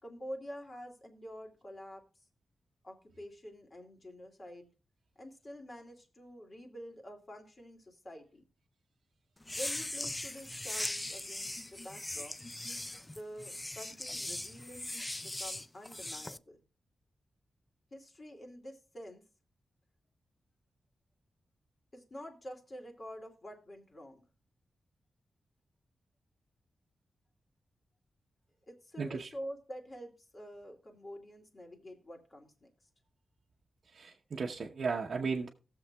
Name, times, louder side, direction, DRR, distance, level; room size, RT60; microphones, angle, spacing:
voice 1, 0.0-2.0 2.8-4.7 5.2-8.5 9.5-12.3 13.1-14.9 15.2-16.6 17.9-19.2 21.9-24.2 28.7-32.7, equal, 35° left, 2.4 m, -47 dB
sound 1, 9.4-16.4, left 1 dB, 15° left, 0.4 m, -40 dB
voice 2, 29.0-29.3 33.9-35.5, right 4 dB, 65° right, 0.9 m, -35 dB
18.5 x 7.0 x 2.3 m
wide cardioid pair, 95°, 0 cm